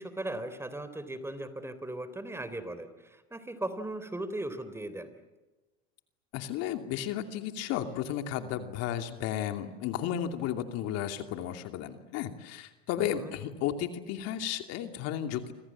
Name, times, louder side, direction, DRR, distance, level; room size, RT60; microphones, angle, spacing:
voice 1, 0.0-5.2 13.0-13.3, right 1 dB, 10° right, 12 dB, 3.5 m, -38 dB
voice 2, 6.3-15.5, left 10 dB, 55° left, 7 dB, 2.7 m, -33 dB
28.0 x 25.5 x 7.5 m, 1.1 s
hypercardioid pair, 95°, 30 cm